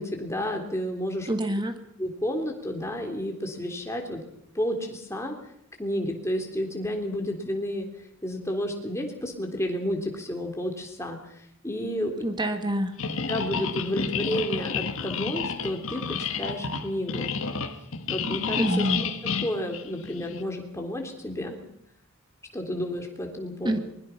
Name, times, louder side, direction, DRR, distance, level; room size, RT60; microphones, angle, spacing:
voice 1, 0.0-1.3 2.0-4.2 4.5-5.3 5.8-7.9 8.2-12.3 13.3-17.3 18.1-18.9 19.4-21.6 22.5-23.8, equal, 15° left, 2 dB, 3.5 m, -31 dB
voice 2, 1.3-1.8 12.2-13.0 18.6-19.0 23.6-23.8, right 1 dB, 20° right, 7 dB, 1.9 m, -26 dB
sound 1, 13.0-20.4, left 5 dB, 70° left, 1.6 m, -30 dB
23.5 x 21.5 x 5.9 m, 0.72 s
head